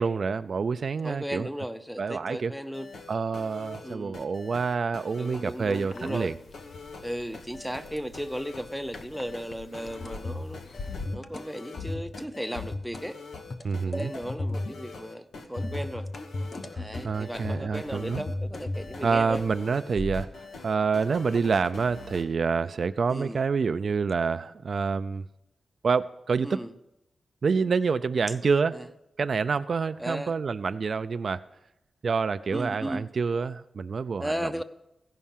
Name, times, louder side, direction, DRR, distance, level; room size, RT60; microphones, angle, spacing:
voice 1, 0.0-1.5 2.0-2.5 3.1-6.3 13.6-14.1 16.7-18.2 19.0-20.3 20.6-25.2 25.8-26.6 27.4-28.8 29.2-31.4 32.0-34.6, right 5 dB, 55° right, 11 dB, 0.3 m, -27 dB
voice 2, 1.0-2.9 3.8-4.2 5.1-6.3 7.0-10.6 11.1-13.2 13.8-16.1 16.7-19.5 23.1-23.4 26.4-26.7 28.7-28.8 30.0-30.4 32.5-33.1 34.2-34.6, equal, ahead, 10 dB, 0.6 m, -35 dB
sound 1, 2.6-22.2, left 3 dB, 85° left, 1.1 m, -44 dB
sound 2, 5.4-11.1, left 3 dB, 60° left, 0.6 m, -46 dB
sound 3, 10.0-10.6 10.9-11.4 11.8-12.2 12.6-13.0 13.3-14.9 15.6-17.1 17.4-19.5 20.0-20.2, left 2 dB, 35° left, 0.8 m, -35 dB
16.0 x 5.5 x 7.3 m, 0.89 s
wide cardioid pair, 120°, 0 cm